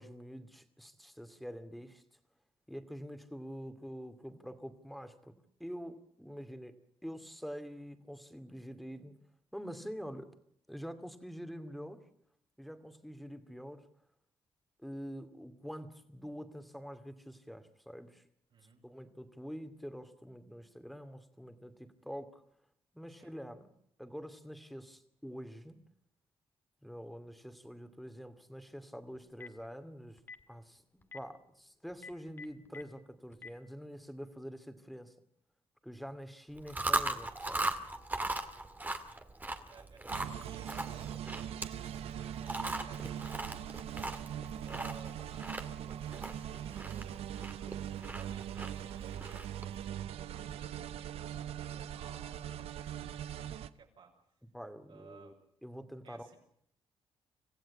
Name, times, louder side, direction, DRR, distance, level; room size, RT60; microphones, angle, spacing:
voice 1, 0.0-2.0 2.7-9.1 9.5-10.3 10.7-12.0 12.6-13.9 14.8-18.2 18.8-22.4 22.9-23.7 24.0-25.8 26.8-30.2 30.5-35.1 35.8-37.7 54.5-55.3 55.6-56.3, equal, ahead, 8 dB, 2.5 m, -46 dB
voice 2, 18.5-18.8 23.2-23.3 39.7-41.2 41.6-43.9 44.6-47.3 48.1-54.1 54.8-55.4 56.0-56.4, right 5 dB, 65° right, 0 dB, 6.2 m, -58 dB
Telephone, 29.2-29.6 30.2-30.4 31.0-31.2 31.9-32.8 33.3-33.5, left 4 dB, 20° left, 1.9 m, -47 dB
Chewing mastication, 36.6-49.8, right 2 dB, 20° right, 2.1 m, -39 dB
sound 1, 40.1-53.7, right 10 dB, 90° right, 0.9 m, -41 dB
26.5 x 15.5 x 8.5 m, 0.71 s
cardioid pair, 95°, 10 cm